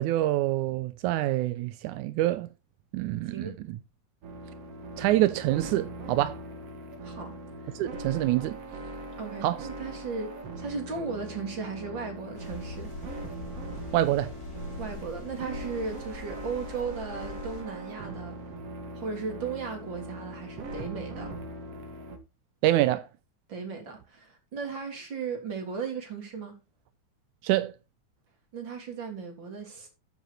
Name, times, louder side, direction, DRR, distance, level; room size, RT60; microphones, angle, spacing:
voice 1, 0.0-2.5 2.9-3.8 5.0-6.4 7.8-8.6 9.4-9.6 13.9-14.3 22.6-23.1 27.4-27.7, right 15 dB, 85° right, 2.2 m, -26 dB
voice 2, 3.2-3.6 7.0-7.3 7.6-7.8 9.2-12.9 14.8-18.4 18.9-21.4 23.5-26.5 28.5-29.9, right 5 dB, 40° right, 3.9 m, -36 dB
sound 1, 4.2-22.2, right 1 dB, 55° right, 2.6 m, -41 dB
sound 2, 12.3-17.6, left 2 dB, 75° left, 6.0 m, -42 dB
13.5 x 7.1 x 4.3 m
omnidirectional pair, 3.4 m